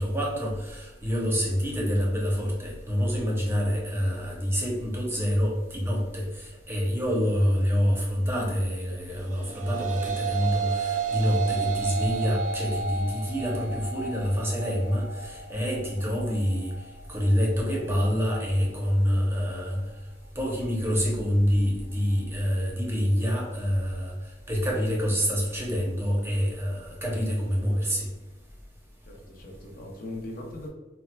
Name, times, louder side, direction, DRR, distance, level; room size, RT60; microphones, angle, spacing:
voice 1, 0.0-16.7 17.1-19.8 20.4-24.1 24.5-28.1, equal, 15° right, -2 dB, 0.7 m, -26 dB
sound 1, 9.2-18.4, right 6 dB, 45° right, 0.4 m, -33 dB
voice 2, 29.0-30.7, left 1 dB, 55° left, 0 dB, 0.7 m, -39 dB
4.4 x 2.2 x 2.2 m, 1.2 s
head